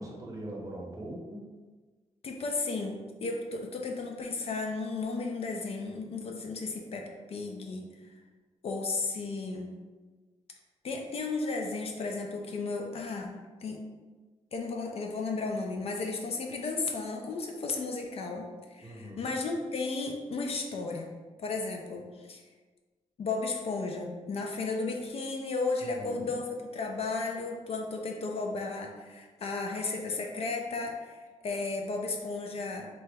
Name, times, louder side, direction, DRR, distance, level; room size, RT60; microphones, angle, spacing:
voice 1, 0.0-1.4 18.8-19.3 25.8-26.3, right 1 dB, 25° right, -2 dB, 0.7 m, -41 dB
voice 2, 2.2-7.9 8.6-9.7 10.8-13.8 14.5-21.1 21.4-22.4 23.2-32.9, left 3 dB, 55° left, 2 dB, 0.4 m, -34 dB
2.9 x 2.2 x 3.3 m, 1.3 s
wide cardioid pair, 120°, 13 cm